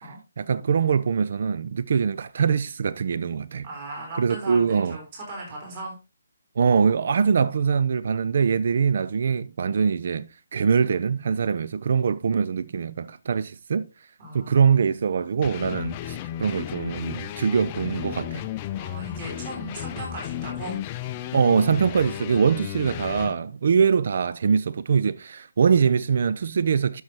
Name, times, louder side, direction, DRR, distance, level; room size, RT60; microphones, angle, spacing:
voice 1, 0.4-3.7 4.2-5.0 6.6-13.9 14.3-18.4 21.3-27.0, right 6 dB, 50° right, 0.3 m, -23 dB
voice 2, 3.6-6.0 14.2-15.2 18.7-20.8, right 2 dB, 30° right, 3.6 m, -38 dB
sound 1, 15.4-23.4, left 12 dB, 25° left, 0.5 m, -34 dB
11.5 x 6.2 x 2.9 m
figure-of-eight pair, 140°, 0 cm